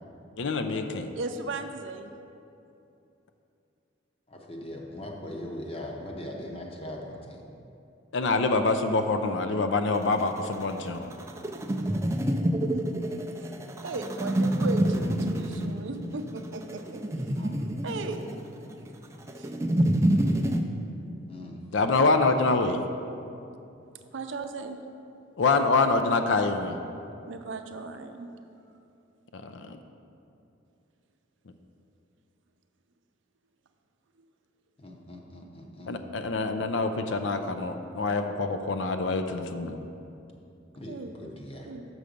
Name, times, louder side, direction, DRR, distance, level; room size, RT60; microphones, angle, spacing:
voice 1, 0.4-1.1 8.1-11.1 21.7-22.8 25.4-26.8 29.3-29.8 35.9-39.8, left 3 dB, 65° left, 7 dB, 0.5 m, -26 dB
voice 2, 1.1-2.1 12.0-12.2 12.7-13.5 13.8-17.0 17.8-18.3 19.4-19.5 20.1-20.4 24.1-24.8 27.3-28.3 40.9-41.1 41.7-41.8, right 3 dB, 70° right, 6 dB, 0.5 m, -37 dB
voice 3, 4.3-7.4 15.3-15.5 17.4-17.8 21.3-21.6 34.8-36.0 40.8-41.7, left 1 dB, 30° left, 0 dB, 0.9 m, -40 dB
sound 1, 9.9-20.6, right 1 dB, 15° right, 0.4 m, -28 dB
6.8 x 6.2 x 5.1 m, 2.7 s
head